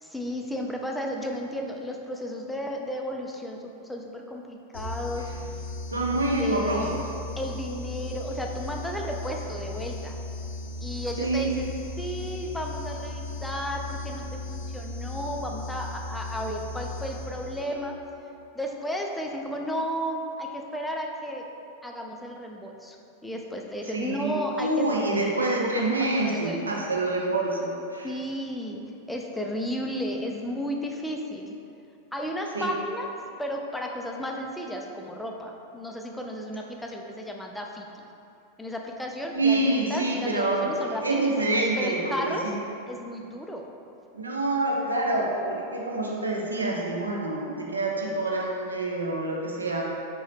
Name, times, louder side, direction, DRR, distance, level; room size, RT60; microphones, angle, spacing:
voice 1, 0.0-5.3 6.4-7.0 7.4-10.2 10.8-18.0 18.5-21.5 21.8-23.0 23.2-24.9 25.8-25.9 26.2-26.6 28.0-28.8 29.1-31.5 32.1-33.1 33.4-38.0 38.6-42.5 42.9-43.7, equal, 5° left, 1 dB, 0.3 m, -33 dB
sound 1, 4.7-17.9, left 2 dB, 65° left, 0.5 m, -36 dB
voice 2, 5.9-7.0 11.2-11.5 23.9-28.1 32.5-32.7 39.3-42.6 44.1-49.8, right 2 dB, 75° right, -2 dB, 0.5 m, -27 dB
3.0 x 2.7 x 3.3 m, 2.7 s
figure-of-eight pair, 90°, 0 cm